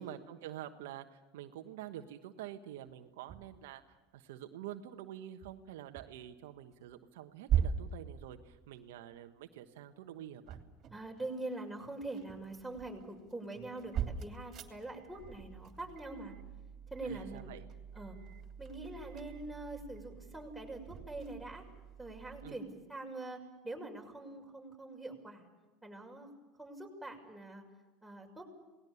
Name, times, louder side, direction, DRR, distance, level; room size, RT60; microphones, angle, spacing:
voice 1, 0.0-10.6 17.0-17.6 22.4-22.6, right 11 dB, 70° right, 6 dB, 1.3 m, -47 dB
sound 1, 3.3-3.7 5.4-6.3 6.7-7.0 7.5-9.4 10.2-11.6 11.9-22.5, right 8 dB, 45° right, 3.0 m, -41 dB
voice 2, 10.9-16.3 16.9-17.5 17.9-18.2 18.6-21.6 22.0-25.5 25.8-26.3 26.6-27.6 28.0-28.4, right 2 dB, ahead, -1 dB, 6.3 m, -44 dB
28.5 x 19.5 x 7.2 m, 1.2 s
hypercardioid pair, 80°, 0 cm